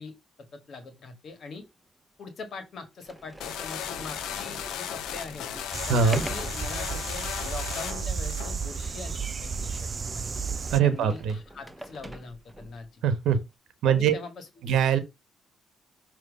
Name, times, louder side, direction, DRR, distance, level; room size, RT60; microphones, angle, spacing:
voice 1, 0.0-1.7 2.2-5.5 5.9-10.3 10.8-13.0 13.8-14.7, left 4 dB, 60° left, 1.6 m, -42 dB
Sliding door, 1.6-1.7 2.4-2.5 3.0-12.9, right 1 dB, 5° right, 0.8 m, -44 dB
sound 1, 3.4-8.9, left 9 dB, 85° left, 0.7 m, -36 dB
sound 2, 5.7-10.8, right 5 dB, 40° right, 0.4 m, -33 dB
voice 2, 5.9-6.2 10.7-11.4 13.0-13.4 13.8-14.1 14.6-15.0, right 7 dB, 80° right, 1.0 m, -22 dB
6.9 x 3.0 x 5.1 m
cardioid pair, 90°, 0 cm